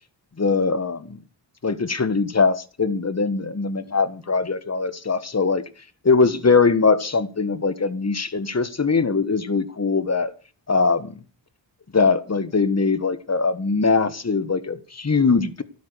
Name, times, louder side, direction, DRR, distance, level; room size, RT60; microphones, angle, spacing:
voice 1, 0.4-1.1 1.6-5.6 6.0-10.3 10.7-11.2 11.9-15.6, left 4 dB, 35° left, 1.5 m, -21 dB
13.0 x 9.5 x 6.8 m
cardioid pair, 50°, 46 cm